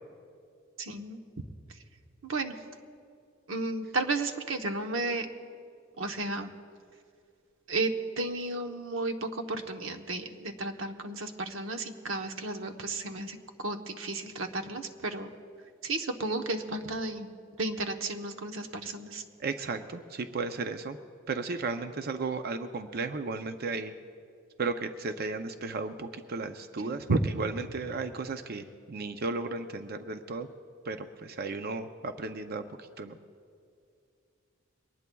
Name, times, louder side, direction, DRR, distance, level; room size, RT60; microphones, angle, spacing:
voice 1, 0.8-1.2 2.2-2.5 3.5-5.3 6.0-6.5 7.7-15.3 15.8-19.2 26.8-27.2, right 2 dB, 75° right, 6 dB, 1.0 m, -33 dB
voice 2, 19.4-21.0 21.3-23.9 24.6-30.5 30.8-33.2, right 3 dB, 50° right, 8 dB, 0.5 m, -35 dB
23.0 x 19.0 x 2.3 m, 2.3 s
head